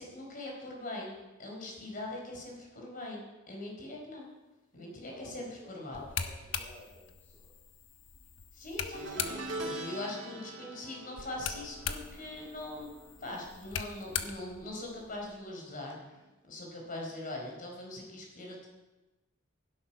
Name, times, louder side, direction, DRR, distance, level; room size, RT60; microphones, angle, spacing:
voice 1, 0.0-4.3 4.7-6.0 8.5-12.9 13.2-16.2 16.5-18.7, left 1 dB, 45° left, -1 dB, 4.6 m, -42 dB
voice 2, 5.0-7.5, left 1 dB, 10° left, -6 dB, 3.3 m, -54 dB
sound 1, 5.9-9.7 11.2-15.4, left 7 dB, 70° left, 1.2 m, -41 dB
sound 2, 8.9-14.3 14.6-15.0 16.2-16.3, right 1 dB, 60° right, 2.6 m, -43 dB
17.5 x 11.5 x 5.7 m, 1.1 s
head